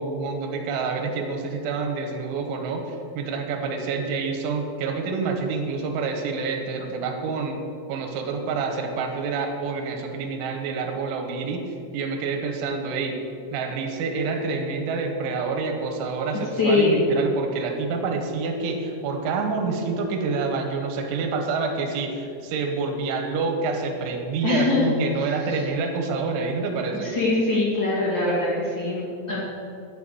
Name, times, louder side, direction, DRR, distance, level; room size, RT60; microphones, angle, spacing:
voice 1, 0.0-7.6 7.9-11.7 11.9-13.2 13.5-27.1, right 4 dB, 85° right, 4 dB, 3.6 m, -27 dB
voice 2, 16.6-17.1 24.4-24.9 25.2-25.6 26.9-29.4, left 3 dB, 40° left, -7 dB, 1.7 m, -23 dB
11.5 x 5.6 x 8.3 m, 2.5 s
omnidirectional pair, 5.3 m